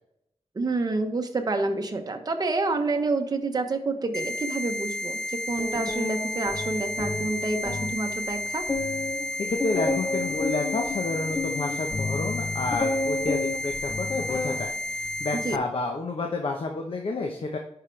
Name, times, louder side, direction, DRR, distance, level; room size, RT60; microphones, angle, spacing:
voice 1, 0.5-8.6 15.4-15.6, right 3 dB, 35° right, 4 dB, 1.1 m, -28 dB
sound 1, 4.1-15.6, left 1 dB, 5° left, 0.4 m, -32 dB
sound 2, 5.6-8.0 8.3-8.4 8.7-14.7 15.0-15.5, left 2 dB, 25° left, 0.8 m, -31 dB
voice 2, 9.4-17.6, left 3 dB, 55° left, 3 dB, 1.0 m, -30 dB
10.5 x 5.8 x 3.3 m, 0.79 s
wide cardioid pair, 120°, 11 cm